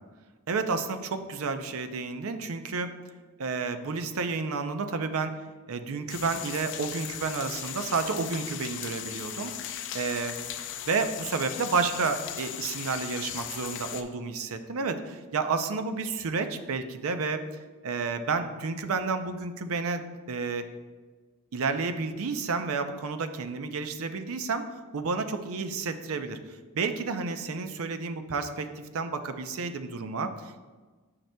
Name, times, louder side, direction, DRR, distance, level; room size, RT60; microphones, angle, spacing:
voice 1, 0.5-2.9 3.4-5.3 5.7-10.4 10.8-17.4 17.8-20.0 20.3-20.6 21.5-28.7 28.9-30.6, right 4 dB, 65° right, 9 dB, 0.5 m, -31 dB
sound 1, 6.1-14.0, left 10 dB, 55° left, 0.4 m, -38 dB
9.1 x 5.8 x 2.2 m, 1.3 s
head